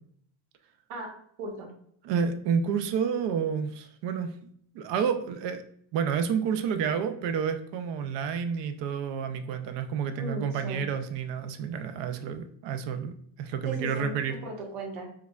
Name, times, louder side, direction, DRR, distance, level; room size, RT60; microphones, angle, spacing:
voice 1, 1.4-1.7 10.2-10.8 13.6-15.1, right 1 dB, 85° right, 1 dB, 1.2 m, -37 dB
voice 2, 2.0-4.3 4.7-5.6 5.9-13.1 13.4-14.4, right 7 dB, 65° right, 9 dB, 0.5 m, -29 dB
4.6 x 2.3 x 2.3 m, 0.65 s
cardioid pair, 150°, 47 cm